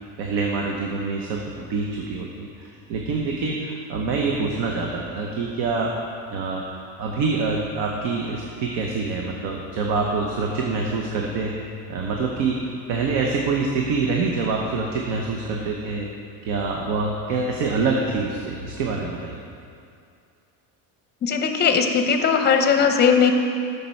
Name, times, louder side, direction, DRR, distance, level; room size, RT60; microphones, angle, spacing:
voice 1, 0.2-5.9 6.3-6.6 7.0-11.5 11.9-12.6 12.9-16.1 16.5-19.4, right 4 dB, 80° right, 0 dB, 1.0 m, -25 dB
voice 2, 21.2-23.3, left 6 dB, 25° left, 5 dB, 0.6 m, -18 dB
9.4 x 6.9 x 4.5 m, 2.4 s
cardioid pair, 155°, 38 cm